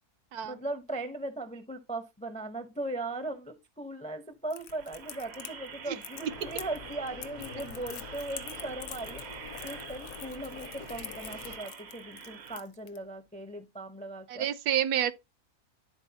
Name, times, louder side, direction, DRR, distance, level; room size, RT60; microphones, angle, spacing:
voice 1, 0.4-14.5, right 2 dB, 10° left, 0.3 m, -38 dB
Crackle, 4.5-13.0, left 11 dB, 85° left, 1.2 m, -46 dB
sound 1, 4.6-12.6, right 7 dB, 60° right, 0.7 m, -46 dB
sound 2, 6.3-11.6, left 7 dB, 65° left, 1.0 m, -46 dB
voice 2, 14.3-15.1, right 10 dB, 80° right, 1.1 m, -28 dB
11.5 x 4.0 x 2.8 m
omnidirectional pair, 1.7 m